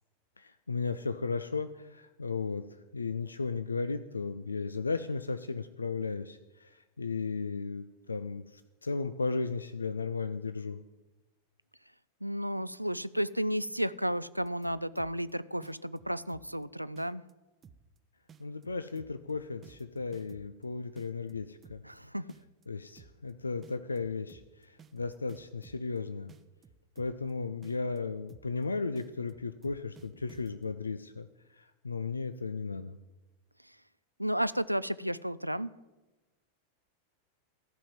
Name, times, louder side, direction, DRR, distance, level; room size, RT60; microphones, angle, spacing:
voice 1, 0.4-2.6 2.9-10.8 18.4-21.8 22.7-26.3 27.0-31.3 31.6-33.0, left 4 dB, 80° left, 11 dB, 0.4 m, -35 dB
voice 2, 12.2-17.2 21.8-22.3 34.2-35.7, equal, 90° right, 17 dB, 0.3 m, -32 dB
sound 1, 14.4-15.3 15.6-16.6 17.0-17.3 17.6-18.0 18.3-20.6 21.0-22.0 22.3-22.6 23.0-23.3 23.6-26.0 26.3-27.3 27.6-28.0 28.3-28.6 29.0-30.8, right 6 dB, 25° right, 0.7 m, -56 dB
14.0 x 5.6 x 7.5 m, 1.1 s
figure-of-eight pair, 90°, 0 cm